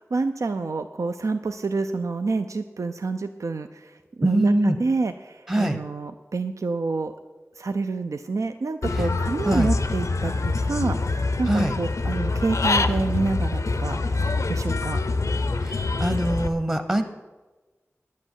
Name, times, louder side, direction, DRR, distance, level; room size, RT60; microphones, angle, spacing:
voice 1, 0.1-3.9 4.2-7.1 7.6-15.0, right 3 dB, 90° right, 8 dB, 0.5 m, -28 dB
voice 2, 4.2-4.8 5.5-5.8 8.9-9.1 9.4-9.7 11.5-11.8 15.6-17.0, right 1 dB, 25° right, 7 dB, 0.8 m, -23 dB
Human voice / Bird, 8.8-16.5, left 3 dB, 85° left, 0.7 m, -25 dB
9.9 x 8.5 x 8.2 m, 1.2 s
wide cardioid pair, 60°, 5 cm